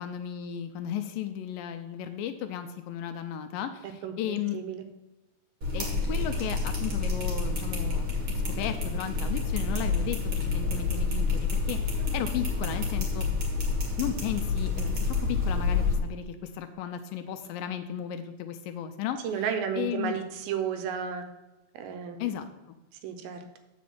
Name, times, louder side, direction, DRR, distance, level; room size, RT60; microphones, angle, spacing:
voice 1, 0.0-4.6 5.7-13.3 14.0-19.2 19.8-20.2 22.2-22.5, left 10 dB, 80° left, 8 dB, 2.2 m, -35 dB
voice 2, 4.0-4.8 12.0-12.1 19.2-21.2 21.7-22.3 23.0-23.6, right 8 dB, 80° right, 7 dB, 2.7 m, -33 dB
sound 1, 5.6-16.0, left 4 dB, 40° right, 2.0 m, -28 dB
8.4 x 5.1 x 7.2 m, 1.1 s
omnidirectional pair, 4.3 m